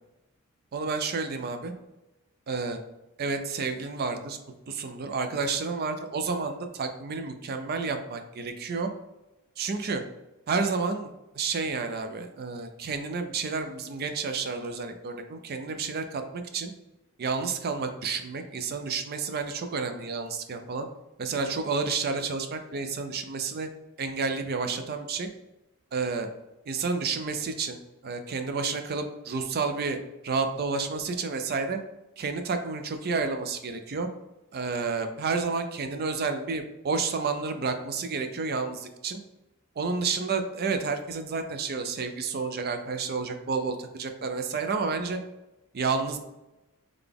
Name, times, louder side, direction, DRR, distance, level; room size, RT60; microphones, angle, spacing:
voice 1, 0.7-1.7 2.5-2.8 3.2-4.4 4.7-8.9 9.6-10.0 10.5-16.7 17.2-20.9 21.2-23.7 24.0-25.3 25.9-26.3 26.7-27.8 28.0-30.0 30.2-31.8 32.2-34.1 34.5-39.2 39.8-45.2 45.7-46.2, right 4 dB, 45° right, 7 dB, 0.5 m, -30 dB
3.9 x 3.4 x 3.4 m, 1.0 s
head